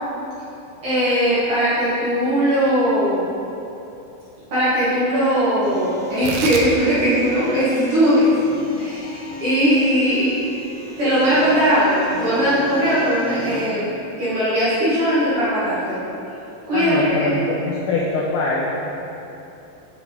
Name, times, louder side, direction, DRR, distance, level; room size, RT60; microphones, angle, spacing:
voice 1, 0.8-3.2 4.5-8.3 8.7-10.3 11.0-16.0 16.7-17.4, equal, 50° right, -12 dB, 1.9 m, -19 dB
sound 1, 5.6-13.6, equal, 65° left, 2.2 m, -33 dB
Tearing, 6.1-12.8, right 4 dB, 80° right, 2.4 m, -36 dB
voice 2, 16.7-18.7, left 3 dB, 85° left, -5 dB, 1.9 m, -23 dB
6.6 x 5.8 x 3.6 m, 2.9 s
omnidirectional pair, 4.4 m